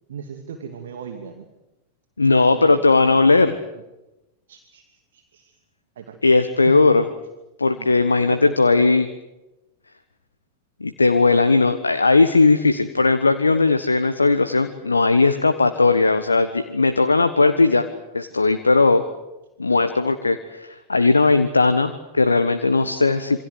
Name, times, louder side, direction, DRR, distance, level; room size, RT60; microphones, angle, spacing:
voice 1, 0.1-1.5 2.3-3.2 4.5-4.8 5.1-5.6 6.0-6.2 6.6-6.8 7.8-7.9 8.3-9.0, right 7 dB, 60° right, 5 dB, 2.6 m, -37 dB
voice 2, 2.2-3.6 6.2-7.0 7.6-9.1 10.8-17.9 18.1-19.0 19.6-23.4, left 3 dB, 80° left, 9 dB, 1.3 m, -17 dB
27.5 x 25.5 x 7.9 m, 1.0 s
figure-of-eight pair, 90°, 0 cm